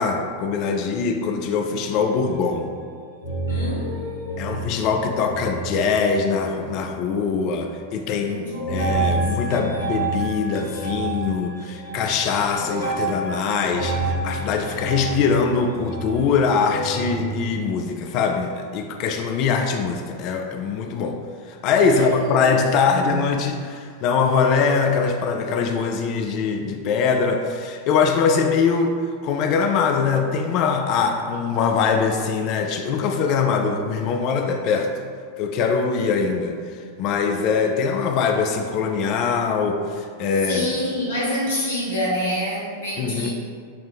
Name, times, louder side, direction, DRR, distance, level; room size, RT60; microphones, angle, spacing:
voice 1, 0.0-2.7 4.4-21.2 21.5-35.1 35.4-40.7 43.0-43.3, left 5 dB, 40° left, 4 dB, 0.3 m, -22 dB
sound 1, 1.9-3.0 3.2-7.0 7.4-7.9 8.5-17.6, right 2 dB, 90° left, 0.9 m, -29 dB
voice 2, 3.5-4.5 8.1-9.9 21.9-22.5 22.8-23.3 40.4-43.3, equal, 65° left, -6 dB, 1.1 m, -28 dB
5.9 x 2.1 x 2.6 m, 2.1 s
figure-of-eight pair, 90°, 0 cm